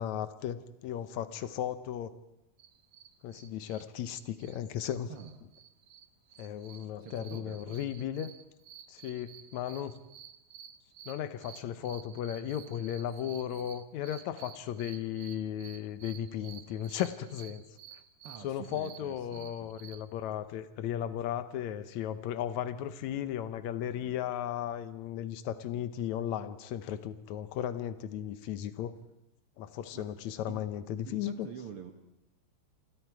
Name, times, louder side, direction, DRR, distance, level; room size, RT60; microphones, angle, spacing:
voice 1, 0.0-2.1 3.2-5.1 6.4-8.3 8.9-10.0 11.1-17.6 18.4-28.9 29.6-31.5, left 10 dB, 75° left, 12 dB, 1.7 m, -36 dB
sound 1, 2.6-20.0, right 10 dB, 85° right, 1.4 m, -53 dB
voice 2, 7.0-7.8 18.2-19.7 29.9-30.1 30.5-30.6 31.1-31.9, right 7 dB, 70° right, 5 dB, 1.3 m, -46 dB
28.5 x 25.5 x 4.8 m, 0.85 s
omnidirectional pair, 4.6 m